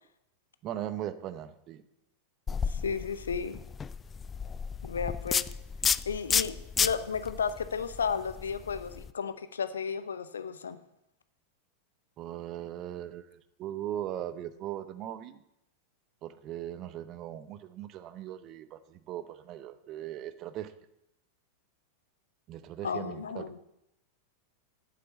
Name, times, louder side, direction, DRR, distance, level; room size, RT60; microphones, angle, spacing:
voice 1, 0.6-1.8 12.2-15.4 16.2-20.7 22.5-23.6, right 12 dB, 35° right, 13 dB, 0.7 m, -39 dB
sound 1, 2.5-9.1, left 6 dB, 20° left, 0.3 m, -32 dB
voice 2, 2.7-3.6 4.8-5.4 6.1-10.8 22.8-23.6, left 6 dB, 70° left, 13 dB, 0.7 m, -33 dB
8.5 x 7.9 x 8.2 m, 0.83 s
figure-of-eight pair, 90°, 0 cm